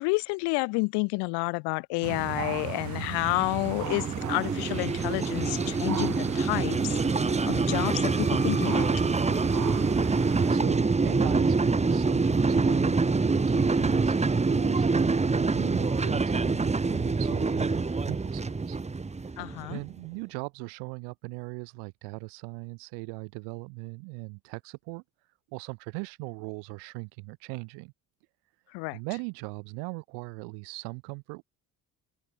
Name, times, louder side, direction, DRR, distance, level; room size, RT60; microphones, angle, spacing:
voice 1, 0.0-7.0 7.5-8.8 19.4-19.8 28.7-29.0, left 29 dB, 75° left, 2.8 m, -30 dB
sound 1, 2.0-10.6, right 11 dB, 45° right, 1.1 m, -36 dB
sound 2, 3.2-19.9, right 4 dB, 15° right, 1.1 m, -26 dB
voice 2, 10.5-18.8 19.7-25.0 25.5-27.9 28.9-31.4, right 37 dB, 75° right, 4.3 m, -39 dB
open air
hypercardioid pair, 50°, 41 cm